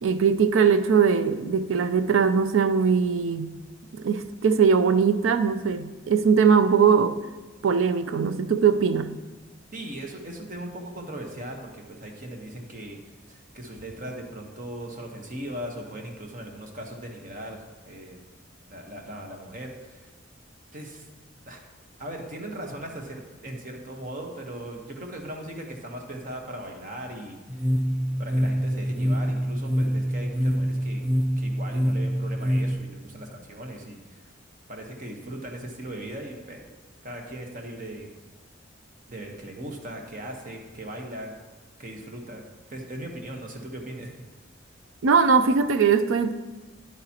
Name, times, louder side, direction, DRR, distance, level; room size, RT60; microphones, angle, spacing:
voice 1, 0.0-3.5 3.9-7.2 7.6-9.1 45.0-46.3, right 6 dB, 85° right, 11 dB, 0.4 m, -21 dB
voice 2, 9.7-13.0 13.3-18.2 18.7-20.1 20.7-21.1 21.5-21.6 22.0-27.4 28.2-31.0 31.4-34.3 34.7-36.6 37.0-38.1 39.1-41.3 41.8-42.4 42.7-44.1, right 1 dB, 45° right, 2 dB, 1.1 m, -38 dB
sound 1, 27.5-32.7, equal, 5° right, 0.5 m, -25 dB
9.8 x 8.8 x 2.9 m, 1.2 s
head